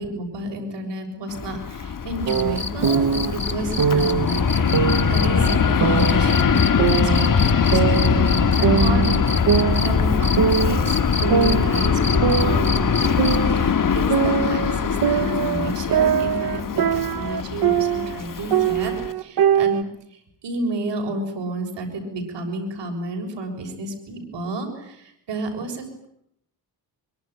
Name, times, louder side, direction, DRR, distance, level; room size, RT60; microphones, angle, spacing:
voice 1, 0.0-9.5 9.8-13.2 13.5-26.1, right 2 dB, 80° right, 5 dB, 7.0 m, -31 dB
Fixed-wing aircraft airplane, 1.3-19.1, left 6 dB, 50° left, 1.9 m, -22 dB
sound 1, 2.3-9.9 10.2-13.6 15.2-15.3, left 3 dB, 25° left, 3.2 m, -29 dB
sound 2, 2.3-3.3 3.8-4.3 4.7-6.3 6.8-8.4 8.6-10.1 10.4-10.9 11.3-13.7 14.1-18.2 18.5-19.8, right 8 dB, 55° right, 1.1 m, -22 dB
24.5 x 24.0 x 9.6 m, 0.74 s
cardioid pair, 75°, 42 cm